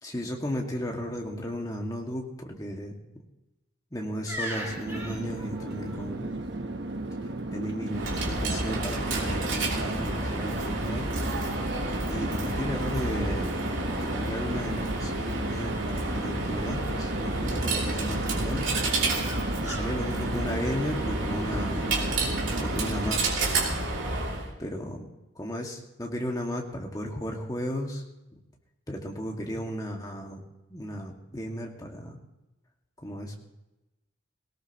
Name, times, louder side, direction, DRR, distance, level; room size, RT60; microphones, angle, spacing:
voice 1, 0.0-3.0 3.9-6.4 7.5-11.1 12.1-13.5 14.0-18.6 19.6-21.9 22.2-22.3 22.6-23.7 24.6-25.0 25.4-28.0 28.3-28.4 28.9-30.4 30.7-32.2 33.0-33.4, equal, 20° left, 0 dB, 2.0 m, -35 dB
sound 1, 4.3-6.0 9.2-9.6 10.3-11.2 11.8-12.7 13.4-13.5 13.8-14.3 14.5-15.1 18.8-21.3 21.9-22.7 23.6-23.8, equal, 10° right, 4.3 m, -42 dB
Chatter / Fixed-wing aircraft airplane, 4.5-23.4, right 2 dB, 60° right, 1.1 m, -35 dB
Coin (dropping), 7.9-24.5, right 2 dB, 75° right, 3.0 m, -30 dB
18.5 x 18.0 x 3.0 m, 0.98 s
head